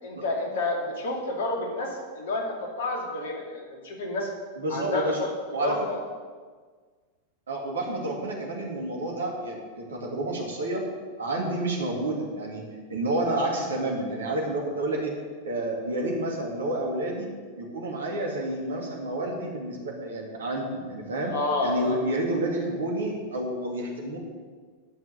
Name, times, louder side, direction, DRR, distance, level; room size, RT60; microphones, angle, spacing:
voice 1, 0.0-2.5 2.8-4.3 4.7-5.3 5.6-6.0 21.2-22.0, left 2 dB, 60° left, 0 dB, 2.5 m, -29 dB
voice 2, 4.6-5.2 5.5-5.7 7.5-10.8 11.2-17.3 17.6-21.3 21.6-24.2, right 1 dB, 65° right, 0 dB, 2.4 m, -30 dB
11.5 x 5.9 x 6.9 m, 1.5 s
figure-of-eight pair, 90°, 0 cm